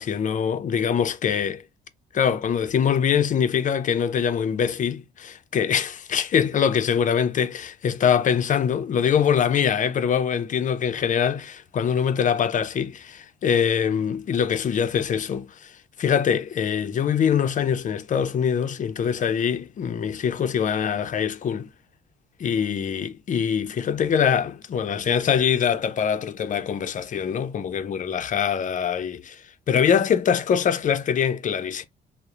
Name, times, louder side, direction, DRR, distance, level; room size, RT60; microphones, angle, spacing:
voice 1, 0.0-1.6 2.1-15.7 16.0-21.7 22.4-31.8, left 7 dB, 40° left, 0.4 m, -23 dB
2.7 x 2.0 x 2.4 m
cardioid pair, 90°, 20 cm